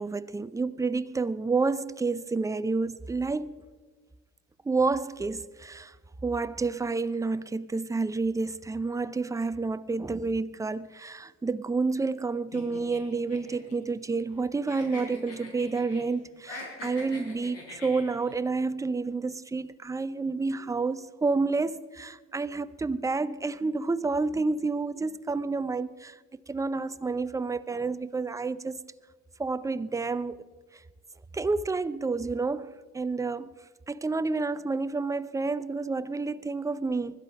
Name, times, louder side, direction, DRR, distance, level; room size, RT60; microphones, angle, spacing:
voice 1, 0.0-3.6 4.6-5.9 6.2-28.8 29.4-30.4 30.7-30.8 31.3-33.5 33.9-37.2, right 3 dB, 10° right, 0.5 m, -29 dB
sound 1, 12.5-14.4 14.7-16.1 16.4-18.3, left 2 dB, 55° left, 5.4 m, -43 dB
21.0 x 12.0 x 5.2 m
cardioid pair, 110°, 29 cm